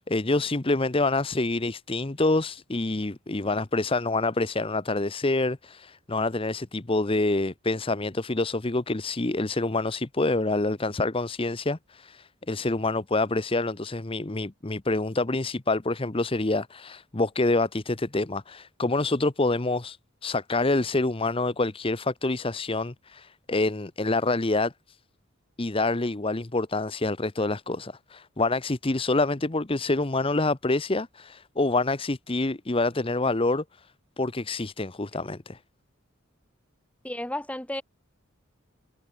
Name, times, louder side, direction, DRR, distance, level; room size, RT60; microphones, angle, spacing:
voice 1, 0.0-20.0 20.2-24.7 25.6-33.6 34.2-35.6, left 2 dB, 25° left, 0.9 m, -27 dB
voice 2, 37.0-37.8, left 1 dB, 5° left, 2.5 m, -32 dB
head